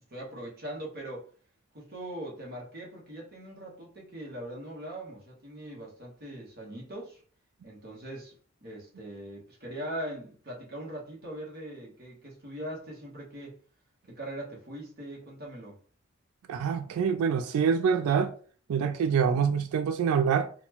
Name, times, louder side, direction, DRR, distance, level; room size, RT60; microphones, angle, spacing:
voice 1, 0.1-1.2 1.7-7.2 7.6-8.3 8.6-13.6 14.0-15.8, right 1 dB, 50° right, 1.1 m, -41 dB
voice 2, 16.5-18.3 18.7-20.5, right 7 dB, 80° right, 0.3 m, -25 dB
4.0 x 2.2 x 2.8 m
head